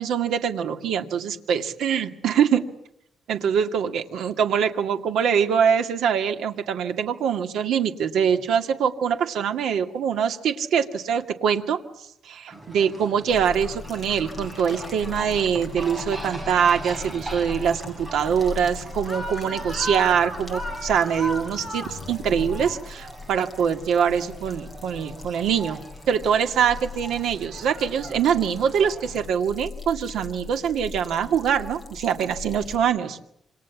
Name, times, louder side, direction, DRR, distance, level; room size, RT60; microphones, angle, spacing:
voice 1, 0.0-2.6 3.3-25.8 26.1-33.2, right 7 dB, 75° right, 6 dB, 2.2 m, -24 dB
sound 1, 12.5-29.3, right 1 dB, 20° right, 5.7 m, -38 dB
sound 2, 13.3-32.8, left 4 dB, 10° left, 4.3 m, -40 dB
sound 3, 13.6-22.7, left 5 dB, 50° left, 5.7 m, -47 dB
28.0 x 26.0 x 7.2 m, 0.78 s
cardioid pair, 180°, 0 cm